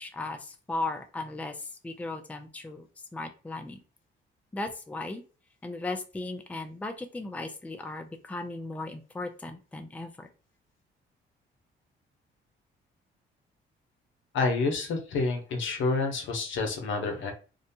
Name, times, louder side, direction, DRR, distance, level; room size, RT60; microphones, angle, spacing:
voice 1, 0.0-2.9 3.1-3.8 4.5-5.2 5.6-10.3, left 2 dB, 5° left, 6 dB, 0.4 m, -36 dB
voice 2, 14.3-17.3, left 3 dB, 75° left, 3 dB, 0.8 m, -28 dB
2.7 x 2.2 x 2.7 m, 0.35 s
cardioid pair, 90°, 20 cm